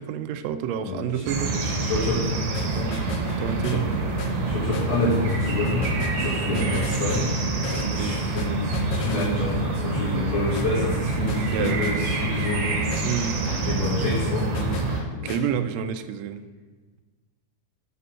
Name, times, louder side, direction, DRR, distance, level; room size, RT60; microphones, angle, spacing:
voice 1, 0.0-1.6 2.7-3.1 3.4-3.9 6.5-6.9 8.0-8.3 11.5-11.9 13.0-13.5 14.1-14.2 15.1-16.5, right 8 dB, 85° right, 9 dB, 1.5 m, -29 dB
voice 2, 0.8-1.2 1.6-2.3 3.6-3.8 4.5-7.3 7.8-12.9 13.6-14.8 15.2-15.4, left 2 dB, 45° left, -7 dB, 2.1 m, -28 dB
sound 1, 1.3-15.0, right 2 dB, 70° right, 2.3 m, -26 dB
sound 2, 2.2-15.4, left 6 dB, 70° left, 1.8 m, -39 dB
6.9 x 6.0 x 6.2 m, 1.3 s
omnidirectional pair, 3.6 m